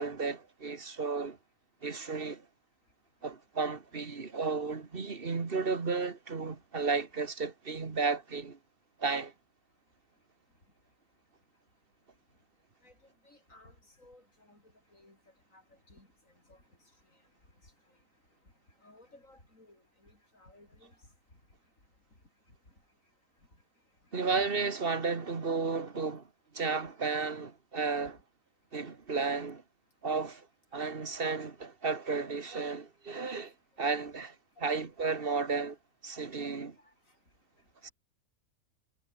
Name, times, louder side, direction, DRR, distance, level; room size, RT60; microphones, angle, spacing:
voice 1, 0.0-1.4 1.8-2.5 3.2-8.6 9.0-9.3 24.1-26.3 26.5-28.2 28.7-29.6 30.0-30.5 30.7-34.3 34.6-35.8 36.0-36.8 37.8-37.9, right 4 dB, 40° right, 1.9 m, -33 dB
voice 2, 13.2-14.6 14.9-15.2 15.5-15.6 15.9-16.1 16.5-16.6 18.8-20.9 24.3-24.5 33.8-34.1 36.8-36.9, left 2 dB, 60° left, 7.9 m, -58 dB
omnidirectional pair, 1.6 m